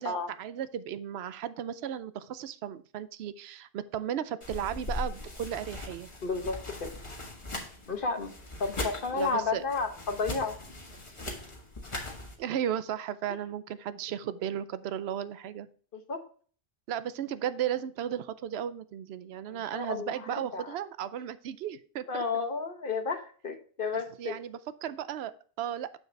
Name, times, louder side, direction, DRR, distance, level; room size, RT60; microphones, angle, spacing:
voice 1, 0.0-6.1 9.1-9.6 12.4-15.7 16.9-22.2 23.9-26.0, right 10 dB, 85° right, 14 dB, 0.8 m, -35 dB
sound 1, 4.4-12.4, left 2 dB, 30° left, 1.5 m, -40 dB
voice 2, 6.2-6.9 7.9-8.3 8.6-10.6 15.9-16.2 19.5-20.7 22.1-24.3, left 4 dB, 60° left, 6 dB, 1.2 m, -32 dB
7.3 x 6.6 x 3.2 m, 0.43 s
omnidirectional pair, 1.0 m